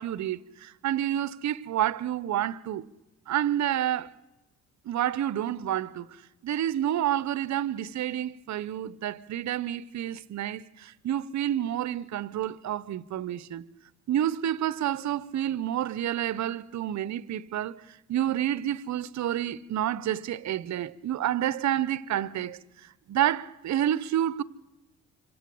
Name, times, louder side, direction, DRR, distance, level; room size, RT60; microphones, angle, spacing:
voice 1, 0.0-2.8 3.3-4.2 4.8-6.1 6.4-13.6 14.1-17.8 18.1-22.6 23.1-24.4, right 11 dB, 65° right, 1.0 m, -29 dB
26.0 x 25.5 x 7.8 m
cardioid pair, 90°, 30 cm